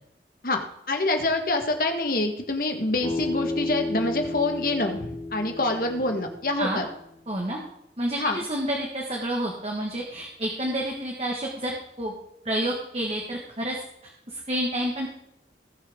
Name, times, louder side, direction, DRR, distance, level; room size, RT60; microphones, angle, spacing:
voice 1, 0.9-6.8 8.1-8.4, left 2 dB, 55° left, 4 dB, 1.6 m, -26 dB
Bass guitar, 3.0-7.3, left 2 dB, 35° left, 2.2 m, -33 dB
voice 2, 7.3-7.6 8.0-8.2 8.5-12.1 12.4-13.7 14.3-15.1, right 1 dB, 35° right, -1 dB, 1.7 m, -29 dB
19.0 x 6.4 x 3.8 m, 0.79 s
head